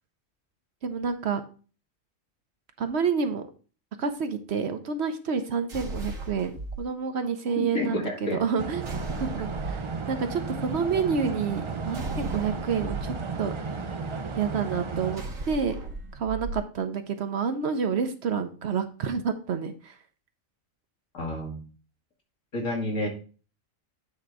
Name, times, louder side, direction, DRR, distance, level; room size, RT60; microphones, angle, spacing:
voice 1, 0.8-1.4 2.8-3.4 4.0-6.5 6.8-8.9 9.2-9.8 10.1-13.5 14.4-15.8 16.1-19.9, right 6 dB, 60° right, 8 dB, 1.0 m, -29 dB
sound 1, 5.7-6.8 8.8-9.9 11.9-13.0 15.1-16.6, right 2 dB, 90° right, 1.9 m, -36 dB
voice 2, 7.5-8.4 21.1-21.6 22.5-23.1, left 2 dB, 80° left, 1 dB, 2.3 m, -30 dB
sound 2, 8.6-15.2, right 4 dB, 40° right, 0.4 m, -34 dB
8.6 x 3.9 x 4.6 m, 0.37 s
omnidirectional pair, 1.3 m